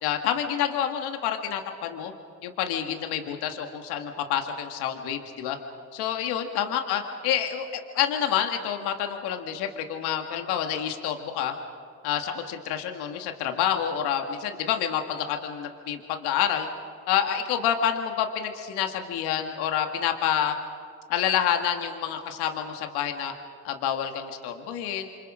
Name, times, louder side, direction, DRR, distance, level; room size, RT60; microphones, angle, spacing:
voice 1, 0.0-2.1 2.4-5.6 5.9-11.5 12.0-16.7 17.1-20.5 21.1-23.3 23.6-25.1, left 9 dB, 85° left, 5 dB, 1.8 m, -28 dB
29.0 x 25.0 x 5.0 m, 2.4 s
supercardioid pair, 70°, 38 cm